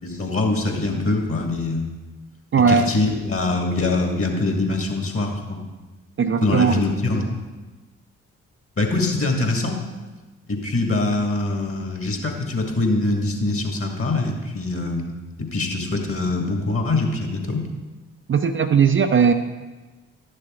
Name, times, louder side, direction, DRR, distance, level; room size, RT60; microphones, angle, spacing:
voice 1, 0.0-1.9 2.7-5.6 6.4-7.3 8.8-9.8 10.5-15.1 15.4-17.6, left 2 dB, 40° left, 2 dB, 2.1 m, -23 dB
voice 2, 2.5-2.9 6.2-6.8 18.3-19.3, right 6 dB, 35° right, 7 dB, 0.6 m, -18 dB
11.5 x 6.6 x 3.8 m, 1.2 s
hypercardioid pair, 40°, 35 cm